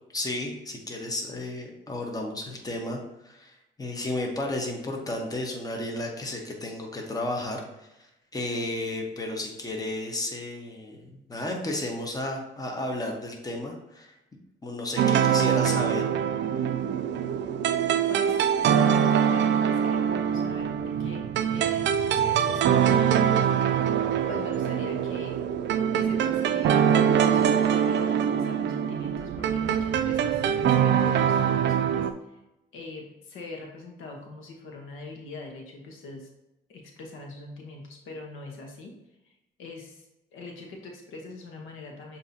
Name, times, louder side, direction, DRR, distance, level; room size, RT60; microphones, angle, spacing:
voice 1, 0.1-7.9 8.3-14.1 14.6-16.1, left 1 dB, 20° left, 1 dB, 1.0 m, -33 dB
sound 1, 15.0-32.1, right 8 dB, 65° right, 0.4 m, -23 dB
voice 2, 18.1-22.8 24.3-25.4 25.9-32.4 32.7-36.3 36.7-38.9 39.2-39.3 39.6-40.1 40.3-42.2, left 3 dB, 85° left, 1 dB, 1.0 m, -42 dB
7.1 x 2.7 x 2.7 m, 0.92 s
cardioid pair, 90°, 20 cm